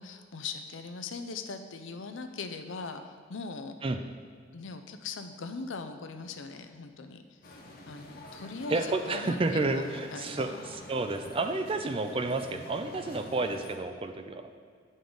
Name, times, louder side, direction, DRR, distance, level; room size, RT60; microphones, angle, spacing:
voice 1, 0.0-3.8 4.5-7.5 7.9-10.6, left 4 dB, 75° left, 8 dB, 0.5 m, -40 dB
sound 1, 7.4-13.8, left 1 dB, 50° left, 0.9 m, -48 dB
voice 2, 8.7-14.4, right 3 dB, 30° right, 7 dB, 0.4 m, -30 dB
9.5 x 5.2 x 3.8 m, 2.1 s
head